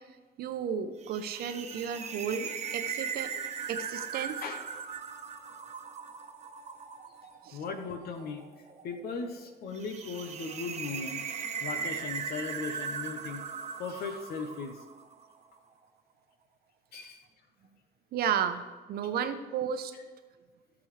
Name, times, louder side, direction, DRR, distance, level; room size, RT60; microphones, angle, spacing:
voice 1, 0.4-3.3 3.7-4.4 7.5-7.6 18.1-18.6 18.9-19.9, right 8 dB, 65° right, 9 dB, 0.9 m, -33 dB
sound 1, 1.0-15.3, right 6 dB, 40° right, 1.1 m, -39 dB
voice 2, 7.5-8.4 8.8-11.3 11.6-13.4 13.8-14.8 16.9-17.2, left 4 dB, 65° left, 6 dB, 1.0 m, -38 dB
15.5 x 6.2 x 3.3 m, 1.4 s
cardioid pair, 110°, 17 cm